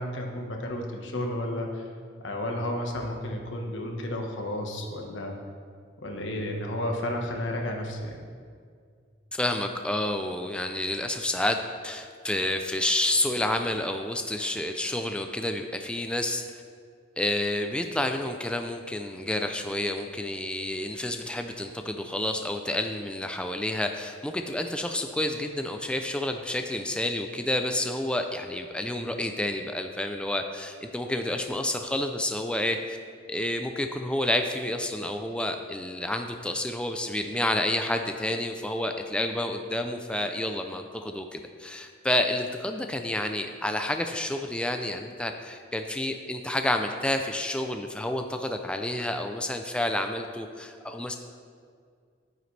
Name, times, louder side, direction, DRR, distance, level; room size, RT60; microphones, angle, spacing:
voice 1, 0.0-1.9 2.2-5.4 6.0-8.2, left 1 dB, 90° left, 1 dB, 1.3 m, -32 dB
voice 2, 9.3-11.6 11.8-16.4 17.2-33.0 33.3-51.2, left 1 dB, 5° left, 5 dB, 0.4 m, -29 dB
10.5 x 9.2 x 3.3 m, 2.1 s
head